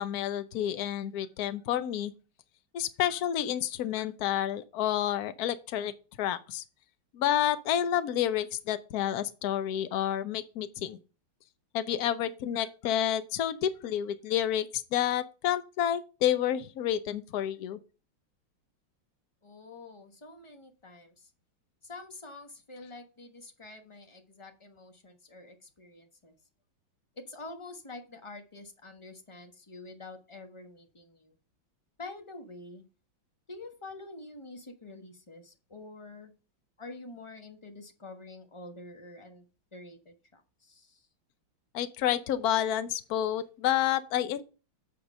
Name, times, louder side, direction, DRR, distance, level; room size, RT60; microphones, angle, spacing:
voice 1, 0.0-2.1 2.7-5.9 6.2-6.6 7.1-11.0 11.7-17.8 41.7-44.4, left 11 dB, 60° left, 1.1 m, -29 dB
voice 2, 19.4-21.3 21.8-26.3 27.2-31.4 32.0-32.8 33.5-36.3 36.8-39.4 39.7-41.1, left 2 dB, 20° left, 1.0 m, -47 dB
8.8 x 5.0 x 5.4 m
omnidirectional pair, 2.2 m